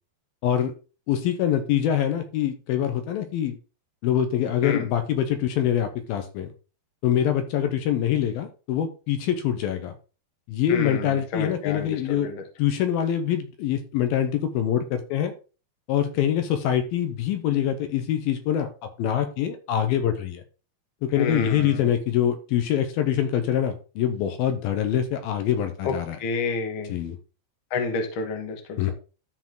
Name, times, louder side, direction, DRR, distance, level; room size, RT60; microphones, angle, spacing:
voice 1, 0.4-0.7 1.1-3.6 4.0-6.5 7.0-10.0 10.5-12.3 12.6-15.3 15.9-18.7 19.0-20.4 21.0-26.2 26.9-27.2 28.8-28.9, left 10 dB, 75° left, 7 dB, 2.5 m, -24 dB
voice 2, 10.7-12.4 21.2-21.9 25.8-25.9 26.2-27.0 27.7-28.9, left 4 dB, 50° left, 4 dB, 1.5 m, -29 dB
13.0 x 5.0 x 3.9 m, 0.34 s
omnidirectional pair, 4.7 m